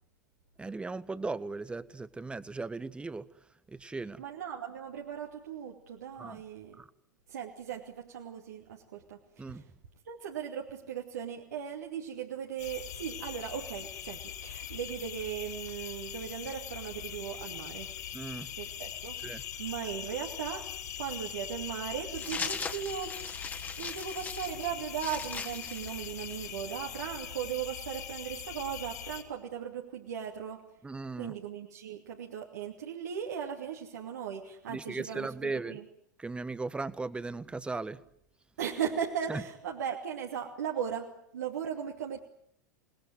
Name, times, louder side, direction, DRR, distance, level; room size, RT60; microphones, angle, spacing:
voice 1, 0.6-3.2 3.7-4.2 6.2-6.4 6.8-6.9 9.4-9.6 18.1-18.5 19.2-19.4 30.8-31.3 34.7-35.8 36.2-38.0 39.3-39.4, right 3 dB, 10° right, 15 dB, 1.3 m, -37 dB
voice 2, 4.2-6.8 7.3-9.6 10.0-17.9 18.6-23.4 23.8-30.7 31.2-35.8 38.6-42.2, right 8 dB, 65° right, -1 dB, 2.7 m, -38 dB
sound 1, 12.6-29.2, left 9 dB, 60° left, 4.4 m, -42 dB
sound 2, 22.2-26.6, left 5 dB, 20° left, 2.5 m, -39 dB
28.5 x 20.0 x 9.5 m, 0.70 s
figure-of-eight pair, 90°, 10 cm